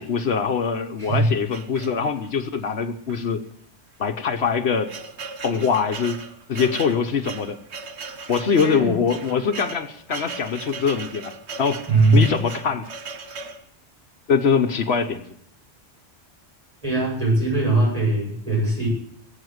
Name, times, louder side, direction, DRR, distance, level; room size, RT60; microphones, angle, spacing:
voice 1, 0.0-3.4 4.0-4.9 5.4-6.2 6.5-7.6 8.3-11.8 12.1-12.9 14.3-15.2, left 6 dB, 70° left, 7 dB, 1.2 m, -23 dB
voice 2, 1.0-1.3 8.6-8.9 11.9-12.2 16.8-18.9, right 2 dB, 35° right, -2 dB, 8.1 m, -20 dB
sound 1, 1.5-2.4 3.1-3.2 3.5-3.6 4.3-13.6, right 4 dB, 75° right, 1.4 m, -37 dB
20.5 x 8.4 x 8.0 m, 0.70 s
omnidirectional pair, 1.1 m